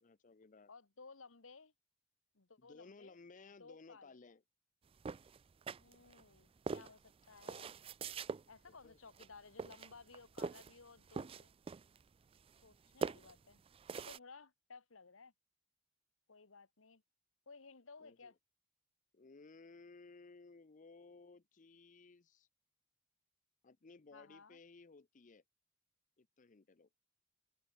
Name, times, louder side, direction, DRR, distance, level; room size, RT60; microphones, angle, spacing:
voice 1, 0.0-0.7 2.6-4.4 8.7-9.0 18.0-18.3 19.1-22.5 23.6-25.4 26.2-26.9, left 3 dB, 40° left, 0.6 m, -59 dB
voice 2, 0.7-1.7 2.3-3.2 3.6-4.2 5.8-7.7 8.5-11.5 12.6-13.6 13.9-15.3 16.3-17.0 17.5-18.4 24.1-24.6, left 4 dB, 80° left, 1.4 m, -58 dB
sound 1, 5.0-6.2 6.7-8.4 9.1-9.3 9.6-10.8 11.1-12.0 12.3-12.8 13.0-14.2, right 4 dB, 30° right, 0.3 m, -43 dB
open air
head